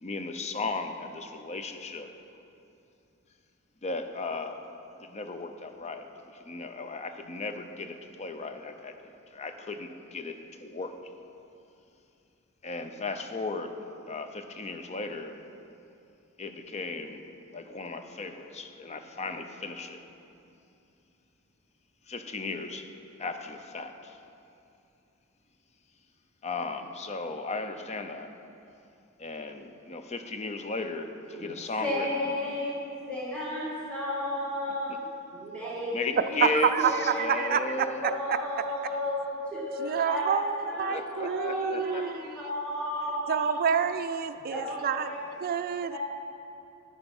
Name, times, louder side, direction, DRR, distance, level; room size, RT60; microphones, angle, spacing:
voice 1, 0.0-2.1 3.8-4.6 5.0-9.0 9.3-11.0 12.6-13.8 14.1-15.4 16.4-17.2 17.5-20.0 22.1-22.9 23.2-24.2 26.4-28.3 29.2-32.3 35.9-36.7 37.0-38.1 40.9-42.0, left 3 dB, 30° left, 7 dB, 0.5 m, -36 dB
voice 2, 31.8-35.0 35.3-36.5 36.8-37.6 38.0-40.4 40.6-43.6 44.5-45.4 45.9-46.0, left 1 dB, 5° left, -8 dB, 1.9 m, -33 dB
voice 3, 36.4-37.6 38.0-38.1 39.8-42.2 43.3-45.1 45.4-46.0, right 7 dB, 45° right, 10 dB, 0.4 m, -28 dB
10.5 x 7.1 x 5.3 m, 2.7 s
head